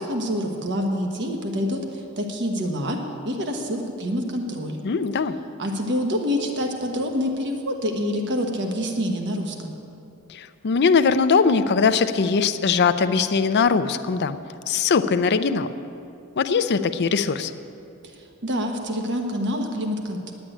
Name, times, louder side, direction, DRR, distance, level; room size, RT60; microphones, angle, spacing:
voice 1, 0.0-3.0 3.2-4.8 5.6-9.8 18.0-20.3, equal, 55° right, 3 dB, 1.2 m, -27 dB
voice 2, 4.8-5.4 10.3-14.4 14.7-15.7 16.4-17.5, left 5 dB, 50° left, 11 dB, 0.5 m, -21 dB
10.0 x 8.6 x 9.0 m, 2.7 s
head